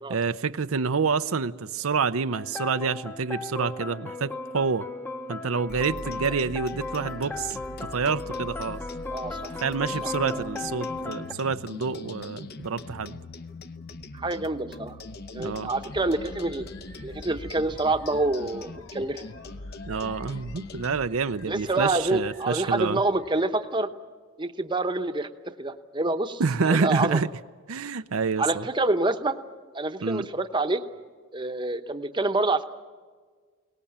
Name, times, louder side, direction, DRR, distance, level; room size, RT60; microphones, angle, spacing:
voice 1, 0.1-4.9 5.3-7.6 7.9-8.8 9.6-13.2 15.4-15.7 19.9-23.0 26.4-27.3 27.7-28.6 30.0-30.3, right 5 dB, 80° right, 11 dB, 0.6 m, -27 dB
sound 1, 2.3-11.3, left 3 dB, 10° left, 0.8 m, -36 dB
sound 2, 5.7-21.1, left 2 dB, 50° left, 0.8 m, -41 dB
voice 2, 9.1-9.6 10.0-10.1 14.1-15.0 15.3-16.6 17.0-19.2 21.5-23.9 24.4-25.3 25.6-27.2 28.4-29.4 29.7-30.8 31.3-32.6, right 2 dB, 20° right, 8 dB, 0.9 m, -27 dB
sound 3, 15.9-23.5, left 1 dB, 85° left, 3.0 m, -49 dB
22.5 x 18.5 x 8.7 m, 1.5 s
head